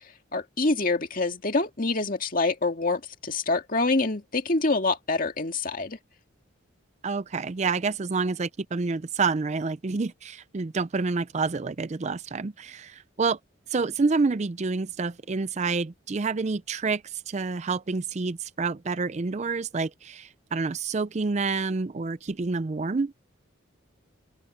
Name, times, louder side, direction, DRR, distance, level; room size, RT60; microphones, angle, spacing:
voice 1, 0.3-6.0, left 3 dB, 45° left, 2.1 m, -26 dB
voice 2, 7.0-13.4 13.7-23.1, right 4 dB, 35° right, 0.4 m, -28 dB
open air
head